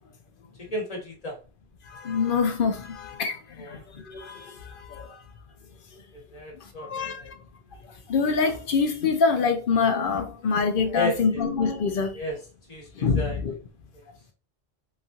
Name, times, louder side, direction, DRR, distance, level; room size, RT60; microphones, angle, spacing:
voice 1, 0.6-1.4 3.6-3.8 6.1-7.3 10.9-11.4 12.1-12.4 12.7-13.4, equal, 40° left, 1.1 m, -33 dB
voice 2, 2.0-3.3 4.1-4.4 6.9-7.2 8.1-12.1 13.0-13.5, left 5 dB, 60° left, 0.8 m, -24 dB
3.0 x 2.4 x 2.6 m
omnidirectional pair, 1.1 m